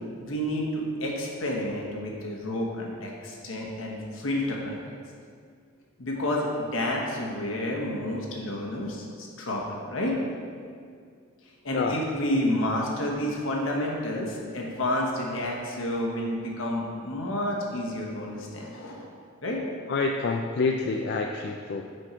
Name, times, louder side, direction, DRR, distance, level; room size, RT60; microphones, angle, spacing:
voice 1, 0.2-4.9 6.0-10.2 11.6-19.0 19.4-19.6, left 1 dB, 80° left, -2 dB, 1.1 m, -30 dB
voice 2, 19.9-21.8, left 4 dB, 55° left, 2 dB, 0.3 m, -27 dB
6.3 x 4.4 x 4.4 m, 2.2 s
head